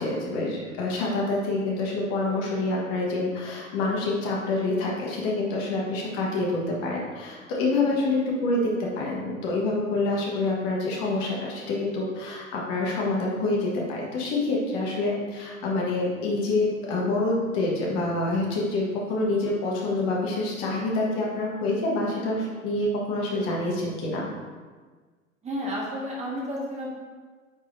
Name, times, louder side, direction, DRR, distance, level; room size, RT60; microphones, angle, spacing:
voice 1, 0.0-24.3, left 2 dB, 40° left, -3 dB, 1.7 m, -27 dB
voice 2, 25.4-26.9, equal, 15° right, -4 dB, 1.5 m, -32 dB
9.4 x 4.7 x 2.8 m, 1.4 s
figure-of-eight pair, 90°, 40 cm